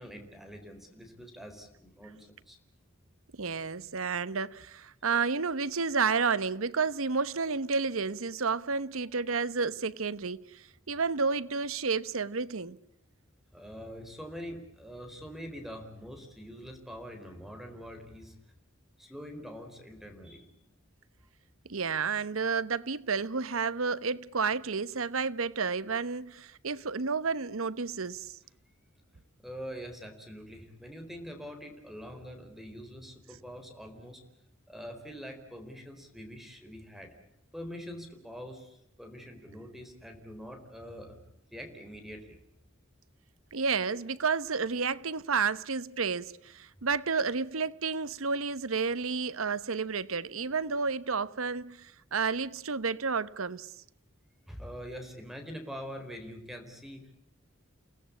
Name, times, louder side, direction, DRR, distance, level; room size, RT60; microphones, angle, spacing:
voice 1, 0.0-2.6 13.5-18.4 19.0-20.6 29.4-34.2 34.7-37.2 37.5-41.2 41.5-42.4 54.5-57.1, equal, ahead, 4.2 m, -44 dB
voice 2, 3.3-12.8 21.7-28.4 43.5-53.7, right 5 dB, 80° right, 1.0 m, -31 dB
29.5 x 18.0 x 8.6 m
head